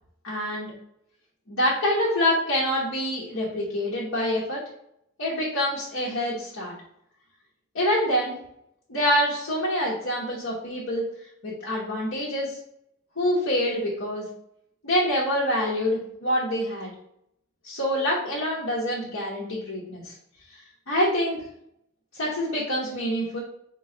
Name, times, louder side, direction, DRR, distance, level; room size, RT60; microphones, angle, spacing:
voice 1, 0.2-0.7 1.5-4.6 5.2-6.7 7.7-8.4 8.9-11.0 11.4-12.6 13.2-14.3 14.8-16.9 17.6-20.1 20.9-21.4 22.1-23.4, equal, 85° left, -6 dB, 1.1 m, -26 dB
3.8 x 3.1 x 3.8 m, 0.75 s
head